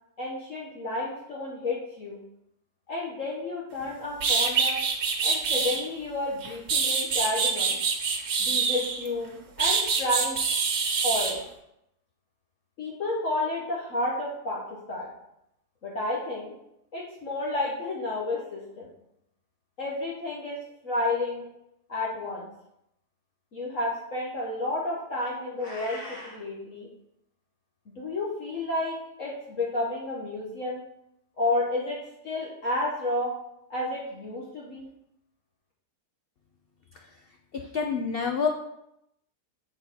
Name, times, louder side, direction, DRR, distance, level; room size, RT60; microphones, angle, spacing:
voice 1, 0.2-2.2 2.9-4.8 5.2-7.8 8.4-10.4 11.0-11.4 12.8-15.1 15.8-16.5 16.9-18.9 19.8-20.6 20.8-21.4 21.9-22.5 23.5-26.9 27.9-30.8 31.4-32.0 32.2-33.3 33.7-34.9, left 2 dB, 55° left, -4 dB, 1.4 m, -31 dB
sound 1, 3.8-3.9 4.2-5.8 6.4-9.1 9.6-11.3, right 5 dB, 75° right, 1.5 m, -25 dB
Meow, 25.6-26.4, left 1 dB, 25° left, 1.9 m, -41 dB
voice 2, 37.5-38.5, left 6 dB, 75° left, 3 dB, 0.5 m, -28 dB
7.6 x 4.2 x 4.4 m, 0.81 s
omnidirectional pair, 1.7 m